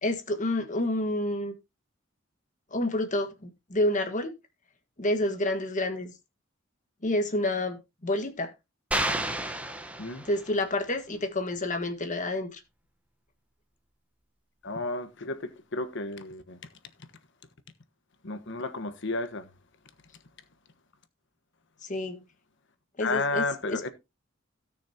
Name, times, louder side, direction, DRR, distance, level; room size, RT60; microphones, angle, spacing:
voice 1, 0.0-1.5 2.7-4.3 5.0-6.1 7.0-8.5 10.2-12.6 21.8-22.2 23.0-23.9, left 1 dB, 40° left, 1.6 m, -29 dB
sound 1, 8.9-10.6, right 1 dB, 5° right, 1.1 m, -31 dB
voice 2, 14.6-16.6 18.2-19.5 23.0-23.9, left 3 dB, 65° left, 1.3 m, -32 dB
17.0 x 6.3 x 2.8 m
head